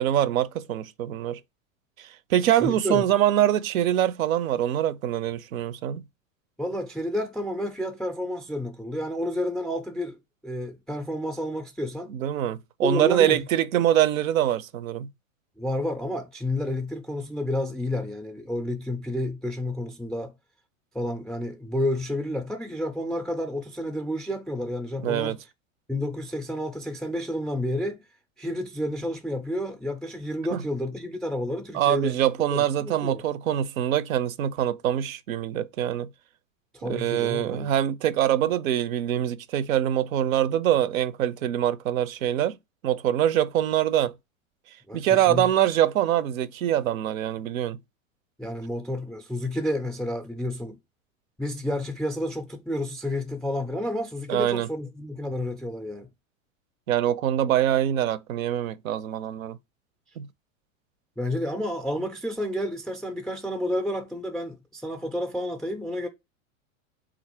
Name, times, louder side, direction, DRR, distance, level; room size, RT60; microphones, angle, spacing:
voice 1, 0.0-1.4 2.0-6.0 12.1-15.1 25.0-25.4 30.5-30.6 31.7-36.1 36.8-42.6 42.8-44.1 44.9-47.8 54.3-54.7 56.9-59.6 60.2-60.3, right 11 dB, 80° right, 0.5 m, -24 dB
voice 2, 2.6-3.0 6.6-10.2 10.4-12.1 12.8-13.4 15.6-20.3 20.9-25.4 25.9-28.0 28.4-32.2 32.5-33.2 36.7-37.7 44.9-45.5 48.4-50.8 51.4-56.1 61.2-66.1, left 1 dB, ahead, 0.3 m, -30 dB
3.7 x 2.5 x 4.3 m
hypercardioid pair, 100°, 40 cm